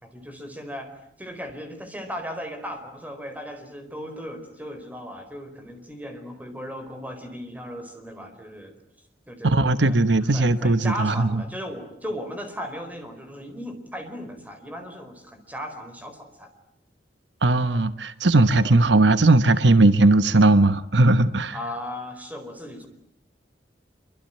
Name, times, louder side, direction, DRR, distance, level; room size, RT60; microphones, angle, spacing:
voice 1, 0.0-0.9 1.2-8.8 9.3-16.5 18.6-18.8 21.5-22.9, equal, 10° right, 7 dB, 4.5 m, -37 dB
voice 2, 9.4-11.4 17.4-21.6, right 2 dB, 80° right, 12 dB, 1.1 m, -18 dB
26.5 x 24.0 x 9.0 m, 0.72 s
head